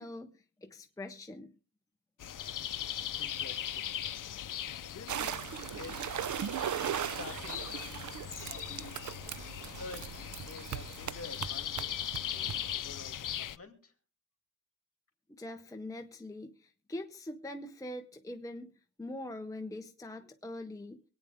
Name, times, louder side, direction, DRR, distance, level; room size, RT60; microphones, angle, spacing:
voice 1, 0.0-1.5 15.3-18.7 19.0-21.0, left 1 dB, 10° left, 6 dB, 0.6 m, -43 dB
sound 1, 2.2-13.6, left 10 dB, 70° left, 0.6 m, -39 dB
voice 2, 2.7-4.0 4.9-5.5 5.7-6.3 6.9-13.9, left 3 dB, 45° left, 5 dB, 2.5 m, -50 dB
sound 2, 5.1-12.8, right 10 dB, 60° right, 0.5 m, -39 dB
23.0 x 9.2 x 3.5 m, 0.39 s
wide cardioid pair, 125°, 33 cm